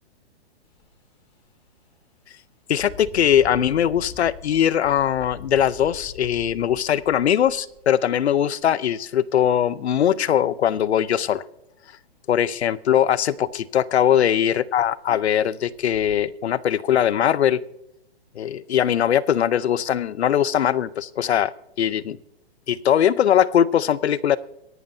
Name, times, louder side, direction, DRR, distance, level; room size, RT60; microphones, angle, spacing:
Engine, 0.6-0.8 1.3-1.5 2.7-8.5 9.4-9.5 9.9-10.6 12.4-12.6 12.9-13.0 13.5-13.6 13.9-14.4 15.0-15.1 15.7-16.1, left 6 dB, 15° left, 2.5 m, -44 dB
voice 1, 2.7-11.4 12.3-17.6 18.3-21.5 21.8-22.2 22.7-24.4, left 10 dB, 85° left, 19 dB, 0.7 m, -21 dB
23.0 x 11.0 x 2.7 m, 0.81 s
hypercardioid pair, 170°, 32 cm